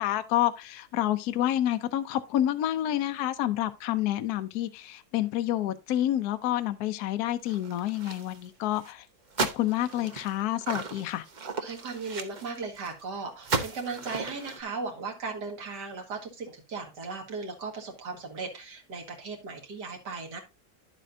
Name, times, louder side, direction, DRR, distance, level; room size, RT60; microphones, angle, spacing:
voice 1, 0.0-9.1 9.4-11.2, left 13 dB, 70° left, 1.1 m, -28 dB
sound 1, 7.5-8.5 8.8-8.9 9.3-13.0 13.4-14.6, right 4 dB, 40° right, 0.6 m, -35 dB
voice 2, 11.6-20.4, right 4 dB, 80° right, 2.4 m, -37 dB
10.0 x 7.6 x 2.6 m
omnidirectional pair, 1.8 m